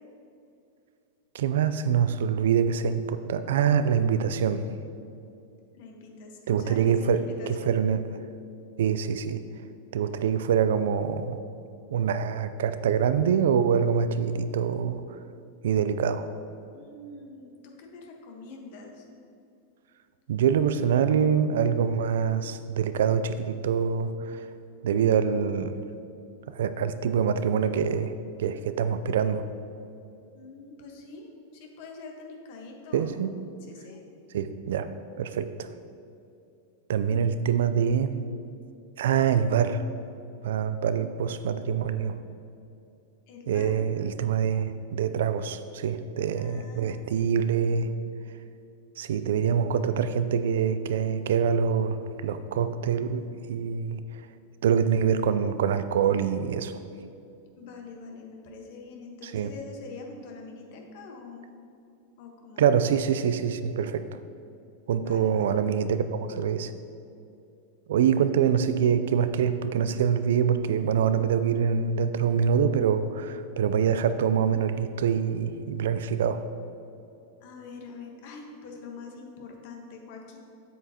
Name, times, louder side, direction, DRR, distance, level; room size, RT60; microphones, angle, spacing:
voice 1, 1.3-4.7 6.5-8.1 8.8-9.4 9.9-11.4 11.9-15.0 15.6-16.3 20.3-24.5 24.8-25.8 26.5-28.1 28.4-29.5 32.9-33.3 34.3-34.9 35.2-35.7 36.9-38.2 39.0-39.8 40.4-42.2 43.5-47.9 49.0-53.2 53.5-54.0 54.6-56.8 59.2-59.5 62.6-64.1 64.9-66.7 67.9-76.4, right 7 dB, 75° right, 11 dB, 0.4 m, -25 dB
voice 2, 5.7-7.8 16.7-19.0 30.3-33.2 33.7-34.0 43.3-43.9 46.4-47.3 57.6-61.5 62.2-62.6 64.9-65.6 77.4-80.4, left 4 dB, 60° left, 2 dB, 1.2 m, -44 dB
8.0 x 7.5 x 2.9 m, 2.5 s
hypercardioid pair, 110°, 0 cm